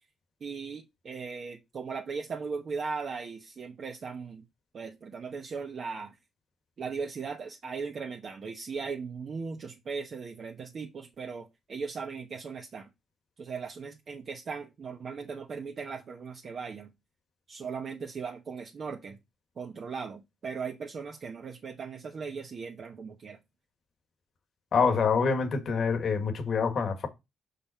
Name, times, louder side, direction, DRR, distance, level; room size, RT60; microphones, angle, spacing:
voice 1, 0.4-4.4 4.7-6.2 6.8-12.9 13.4-16.9 17.5-19.2 19.6-23.4, right 5 dB, 50° right, 1.1 m, -38 dB
voice 2, 24.7-27.1, left 5 dB, 55° left, 1.7 m, -26 dB
5.6 x 5.5 x 4.3 m
cardioid pair, 90°, 0 cm